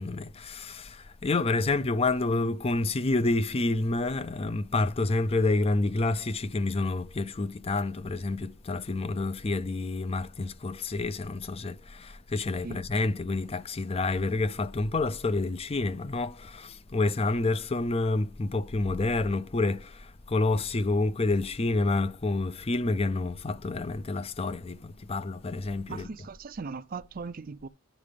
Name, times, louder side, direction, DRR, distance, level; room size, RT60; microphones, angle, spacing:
voice 1, 0.0-26.3, left 2 dB, 25° left, 0.5 m, -28 dB
voice 2, 25.9-27.7, right 4 dB, 40° right, 0.4 m, -38 dB
10.0 x 3.7 x 5.1 m
head